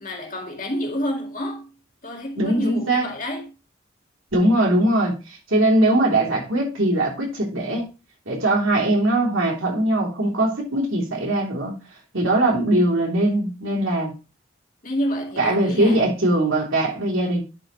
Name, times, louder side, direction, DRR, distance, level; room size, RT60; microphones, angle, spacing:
voice 1, 0.0-1.7 2.0-3.5 14.8-16.0, equal, 40° left, 2.0 m, -29 dB
voice 2, 2.3-3.1 4.3-5.1 5.5-7.8 8.3-11.7 12.1-14.1 15.4-17.4, right 1 dB, 85° right, 3.2 m, -20 dB
10.5 x 5.1 x 3.1 m
head